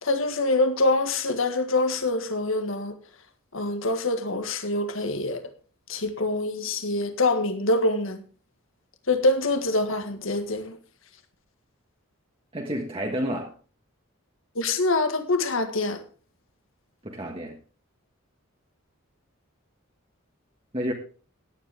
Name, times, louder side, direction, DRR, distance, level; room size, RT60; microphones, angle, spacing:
voice 1, 0.0-3.0 3.5-5.4 5.9-8.2 9.1-10.8 14.6-16.0, left 2 dB, 65° left, 1.8 m, -25 dB
voice 2, 12.5-13.5 17.0-17.6 20.7-20.9, equal, 25° right, 1.6 m, -30 dB
16.5 x 10.5 x 3.6 m
head